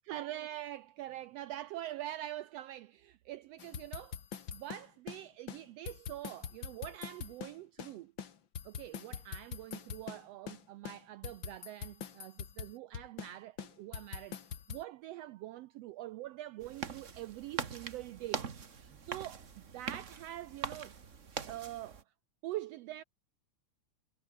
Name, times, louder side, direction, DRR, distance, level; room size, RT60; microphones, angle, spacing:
voice 1, 0.0-4.2 4.5-8.1 8.6-14.4 14.7-21.0 21.5-22.0 22.4-23.0, right 14 dB, 90° right, 1.4 m, -44 dB
sound 1, 3.6-5.2 5.5-5.6 5.9-7.9 8.2-10.2 10.5-10.6 10.8-13.3 13.6-14.8, left 8 dB, 45° left, 2.0 m, -43 dB
sound 2, 16.6-22.0, right 5 dB, 35° right, 1.2 m, -42 dB
omnidirectional pair, 3.5 m